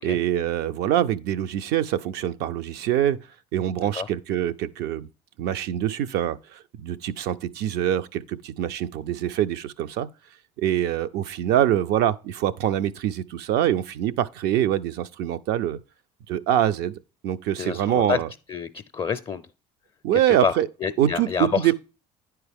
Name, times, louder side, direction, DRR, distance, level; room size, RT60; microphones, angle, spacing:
voice 1, 0.0-3.2 3.5-5.1 5.4-10.1 10.6-15.8 16.3-16.9 17.2-18.3 20.0-20.7 21.0-21.7, right 11 dB, 70° right, 0.5 m, -24 dB
voice 2, 17.6-18.2 18.5-19.4 20.1-21.7, left 5 dB, 30° left, 0.5 m, -28 dB
9.6 x 4.6 x 3.4 m
hypercardioid pair, 70°, 18 cm